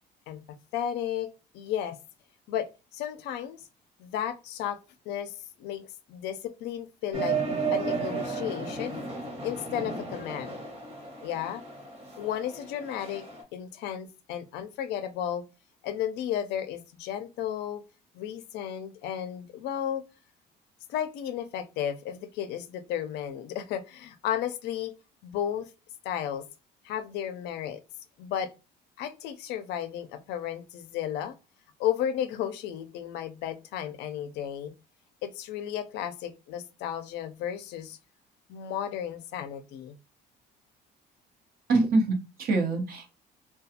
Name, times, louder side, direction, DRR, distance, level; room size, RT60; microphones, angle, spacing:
voice 1, 0.7-2.0 2.5-3.7 4.0-4.8 5.1-5.3 5.6-7.4 7.7-9.0 9.4-10.6 11.2-11.6 12.2-13.3 13.5-15.4 15.8-17.8 18.1-20.0 20.9-24.9 25.2-25.7 26.0-26.4 26.8-27.8 28.2-28.5 29.0-31.3 31.8-34.7 35.2-38.0 38.5-40.0, left 10 dB, 80° left, 0.4 m, -33 dB
sound 1, 7.1-13.4, right 5 dB, 35° right, 1.0 m, -34 dB
voice 2, 41.7-43.1, right 3 dB, 60° right, 0.8 m, -25 dB
2.4 x 2.2 x 2.7 m
cardioid pair, 110°, 17 cm